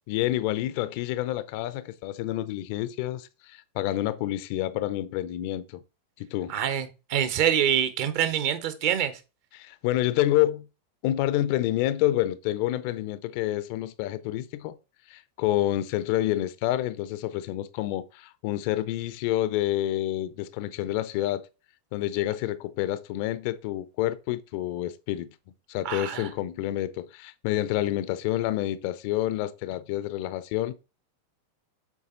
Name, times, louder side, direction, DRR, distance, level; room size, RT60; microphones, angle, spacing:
voice 1, 0.1-5.8 6.2-6.5 9.5-10.7 11.0-14.8 15.1-21.5 21.9-25.3 25.7-30.8, left 14 dB, 45° left, 0.5 m, -28 dB
voice 2, 6.5-9.1 25.8-26.3, right 9 dB, 45° right, 1.0 m, -25 dB
7.2 x 4.1 x 4.0 m
figure-of-eight pair, 90°, 0 cm